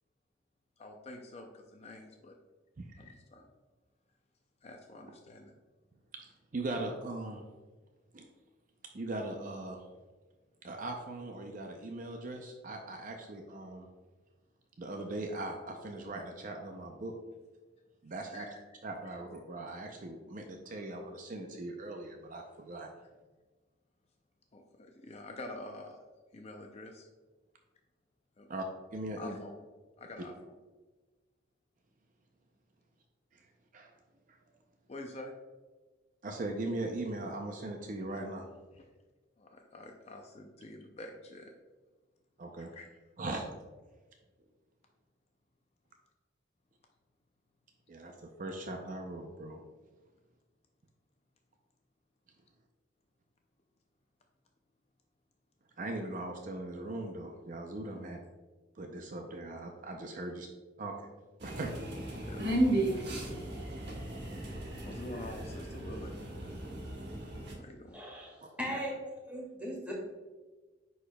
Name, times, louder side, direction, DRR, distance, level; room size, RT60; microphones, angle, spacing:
voice 1, 0.8-2.3 2.9-3.5 4.6-5.5 18.3-18.5 24.5-26.0 26.3-27.1 28.4-28.5 29.2-29.6 30.0-30.3 34.9-35.3 38.7-38.8 39.4-41.5 42.6-42.9 62.2-62.5 64.8-66.1 67.6-68.0, left 2 dB, 35° left, 3 dB, 0.5 m, -47 dB
voice 2, 6.1-7.4 8.1-8.2 8.9-9.8 10.6-13.9 14.8-17.2 18.0-18.5 18.8-22.9 28.5-28.7 28.9-29.4 33.3-33.5 33.7-33.9 36.2-38.5 42.4-42.7 43.2-43.4 47.9-49.6 55.8-58.2 58.8-60.5 60.8-60.9 61.4-61.7 68.6-68.8, right 2 dB, 45° right, 3 dB, 0.5 m, -40 dB
sound 1, 61.4-67.5, right 1 dB, 60° right, 1.1 m, -35 dB
voice 3, 67.9-68.9 69.3-69.9, equal, 10° right, -4 dB, 1.8 m, -38 dB
9.8 x 4.4 x 2.2 m, 1.3 s
head